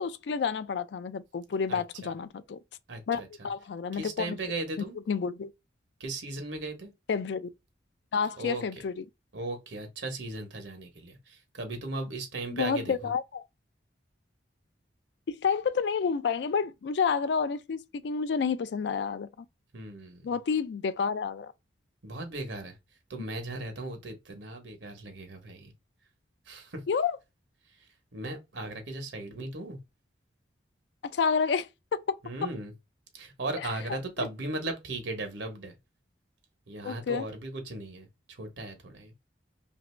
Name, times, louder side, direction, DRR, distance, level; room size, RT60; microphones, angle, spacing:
voice 1, 0.0-2.6 3.1-4.4 5.1-5.5 7.1-7.5 8.1-9.0 12.5-13.4 15.3-19.5 20.2-21.5 26.9-27.2 31.0-32.2 33.9-34.3 36.8-37.3, left 6 dB, 65° left, 0.4 m, -30 dB
voice 2, 1.7-2.1 2.9-3.5 3.9-5.0 6.0-6.9 8.4-8.6 9.3-13.1 19.7-20.3 22.0-22.8 23.1-25.7 26.5-26.8 27.7-29.8 32.2-32.7 33.1-35.7 36.7-39.1, right 2 dB, 75° right, 1.0 m, -37 dB
2.9 x 2.6 x 3.2 m
head